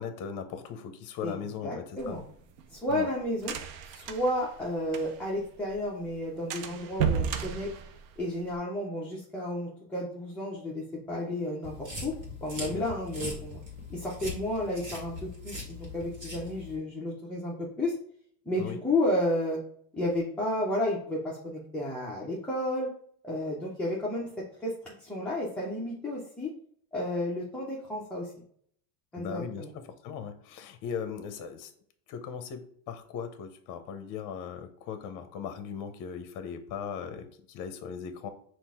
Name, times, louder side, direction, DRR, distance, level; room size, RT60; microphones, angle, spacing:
voice 1, 0.0-2.2 2.9-3.1 12.7-12.8 18.6-18.8 29.1-31.7 32.1-38.3, left 7 dB, 40° left, 8 dB, 0.7 m, -38 dB
voice 2, 1.6-2.2 2.7-3.5 3.8-7.7 8.2-12.1 12.4-13.6 13.9-17.9 18.5-19.6 19.9-22.9 23.2-24.3 24.6-26.5 26.9-28.3 29.1-29.7, left 1 dB, 5° left, -6 dB, 0.4 m, -32 dB
sound 1, 2.0-5.4 5.7-5.8 6.1-6.2 6.5-8.6, right 7 dB, 65° right, 0.6 m, -33 dB
sound 2, 11.6-16.8, left 2 dB, 40° right, 1.6 m, -41 dB
5.9 x 2.5 x 3.5 m, 0.62 s
cardioid pair, 160°, 46 cm